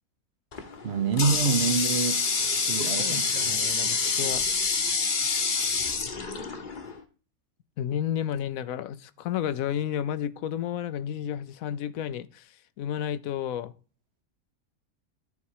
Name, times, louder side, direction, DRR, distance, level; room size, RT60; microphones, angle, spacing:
Water tap faucet, 0.5-7.0, left 4 dB, 40° left, 1.1 m, -27 dB
voice 1, 0.8-2.4 2.7-4.2, right 5 dB, 50° right, 1.1 m, -28 dB
voice 2, 3.0-4.4 7.8-13.7, left 10 dB, 75° left, 1.0 m, -32 dB
11.0 x 4.3 x 4.7 m
omnidirectional pair, 1.5 m